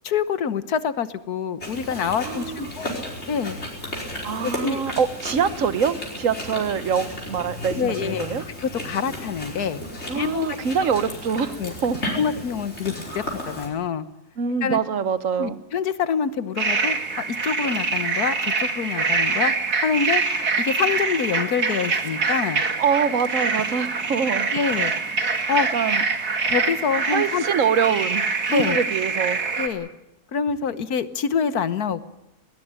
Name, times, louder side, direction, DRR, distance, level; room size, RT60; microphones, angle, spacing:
voice 1, 0.0-2.9 3.3-3.6 4.4-4.8 7.7-8.3 8.6-9.8 10.1-10.5 11.6-11.7 12.0-14.0 14.6-14.8 15.4-19.5 19.8-20.2 20.6-22.6 24.5-24.9 25.5-25.7 26.5-27.4 28.5-28.9 29.6-29.9 30.3-32.1, left 6 dB, 75° left, 13 dB, 1.6 m, -26 dB
Chewing mastication, 1.6-13.7, left 1 dB, 45° left, 5.4 m, -34 dB
voice 2, 2.2-2.7 4.2-8.4 10.1-12.0 14.4-15.6 22.8-24.5 25.7-26.0 27.1-29.4, right 7 dB, 60° right, 13 dB, 1.4 m, -24 dB
sound 1, 16.6-29.7, right 4 dB, 80° right, 2.7 m, -25 dB
20.0 x 20.0 x 8.8 m, 0.91 s
omnidirectional pair, 1.6 m